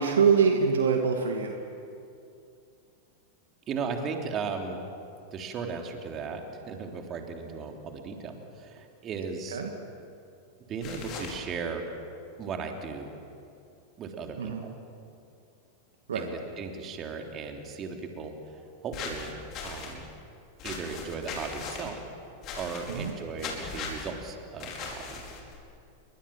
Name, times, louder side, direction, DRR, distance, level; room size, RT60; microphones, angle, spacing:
voice 1, 0.0-1.6 9.5-9.7 14.4-14.6 16.1-16.2 22.9-23.1, right 6 dB, 65° right, 4 dB, 2.2 m, -24 dB
voice 2, 3.7-4.8 5.3-9.6 10.7-11.8 12.4-13.1 14.0-14.7 16.1-20.1 20.6-22.0 22.6-25.2, right 5 dB, 30° right, 3 dB, 3.5 m, -36 dB
sound 1, 10.8-11.4 18.9-19.9 20.6-21.9 22.4-23.1 23.4-24.1 24.6-25.6, left 5 dB, 35° left, 5.2 m, -38 dB
30.0 x 23.5 x 7.5 m, 2.5 s
figure-of-eight pair, 90°, 0 cm